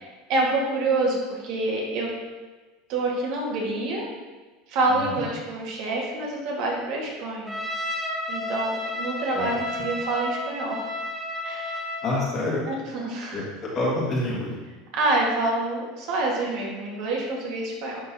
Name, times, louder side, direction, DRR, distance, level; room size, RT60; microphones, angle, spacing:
voice 1, 0.3-2.1 2.9-4.1 4.7-7.6 8.3-10.9 11.4-11.9 12.7-13.4 14.9-18.0, right 2 dB, 50° right, -2 dB, 1.6 m, -27 dB
voice 2, 4.9-5.2 9.3-9.5 12.0-12.7 13.3-14.5, left 2 dB, 30° left, -4 dB, 1.7 m, -27 dB
Trumpet, 7.5-12.2, left 1 dB, ahead, 0.8 m, -31 dB
11.0 x 3.8 x 2.8 m, 1.3 s
supercardioid pair, 155°, 0 cm